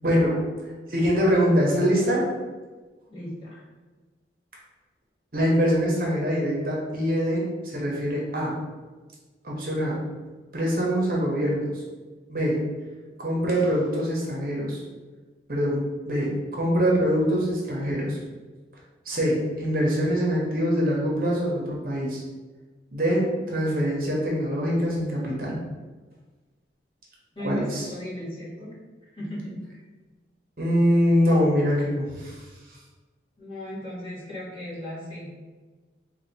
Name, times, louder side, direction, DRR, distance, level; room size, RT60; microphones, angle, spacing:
voice 1, 0.0-0.4 0.9-2.3 5.3-8.6 9.4-10.0 10.5-11.8 12.3-12.6 13.2-14.8 15.5-18.2 19.1-22.2 22.9-25.6 27.4-27.9 30.6-32.4, equal, 50° right, -3 dB, 0.8 m, -24 dB
voice 2, 3.1-3.6 27.3-28.7 29.1-29.6 33.4-35.3, equal, 30° left, -10 dB, 1.4 m, -36 dB
3.3 x 2.3 x 3.9 m, 1.3 s
head